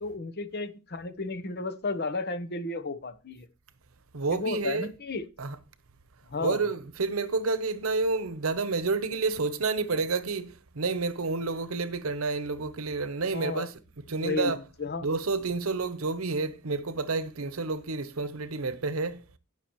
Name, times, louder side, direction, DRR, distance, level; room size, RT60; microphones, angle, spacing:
voice 1, 0.0-3.5 4.3-5.3 6.3-6.7 13.3-13.7 14.2-15.1, left 3 dB, 50° left, 1.0 m, -33 dB
voice 2, 4.1-4.9 5.4-5.6 6.4-13.7 14.1-14.6 15.0-19.2, right 3 dB, 80° right, 0.9 m, -29 dB
17.5 x 5.9 x 3.1 m
head